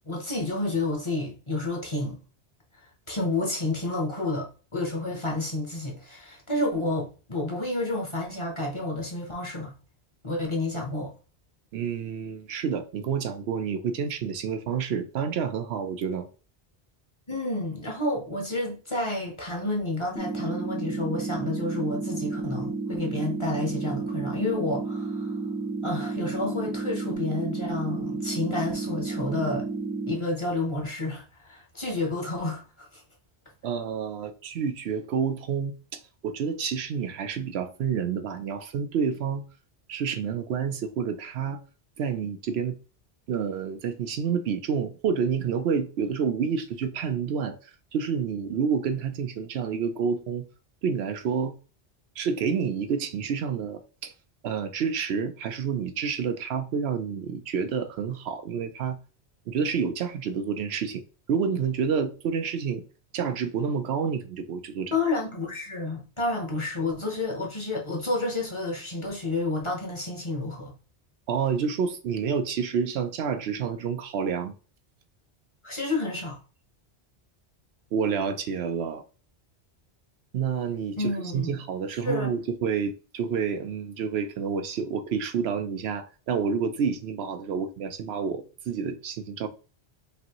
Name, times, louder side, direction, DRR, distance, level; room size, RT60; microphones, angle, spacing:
voice 1, 0.1-2.2 3.1-9.8 10.2-11.1 17.3-25.4 25.8-29.7 30.1-33.0 64.9-70.8 75.6-76.4 80.9-81.5 81.9-82.3, left 2 dB, 30° left, 0.9 m, -30 dB
voice 2, 11.7-16.3 33.6-39.5 39.9-41.6 42.0-42.7 43.3-50.4 50.8-51.6 52.2-54.1 54.4-59.0 59.5-61.0 61.3-62.8 63.1-65.0 71.3-74.5 77.9-79.0 80.3-89.5, right 6 dB, 75° right, 0.8 m, -29 dB
sound 1, 20.2-30.2, right 3 dB, ahead, 0.5 m, -32 dB
5.2 x 2.7 x 2.9 m
omnidirectional pair, 1.1 m